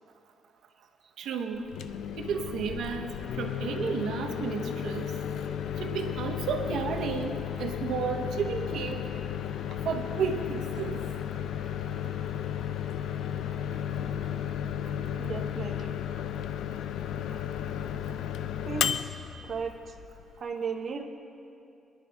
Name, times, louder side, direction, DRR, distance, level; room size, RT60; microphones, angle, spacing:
voice 1, 1.2-1.6 2.2-5.1 5.8-9.1 9.8-11.0, right 6 dB, 80° right, 5 dB, 1.0 m, -32 dB
Microwave oven, 1.6-20.4, left 9 dB, 90° left, 0.5 m, -34 dB
sound 1, 2.0-19.7, equal, 25° left, 4.2 m, -52 dB
voice 2, 15.2-15.9 18.7-19.1 19.4-19.9 20.4-21.0, right 5 dB, 45° right, 2 dB, 1.0 m, -35 dB
24.0 x 10.5 x 3.5 m, 2.5 s
cardioid pair, 170°, 0 cm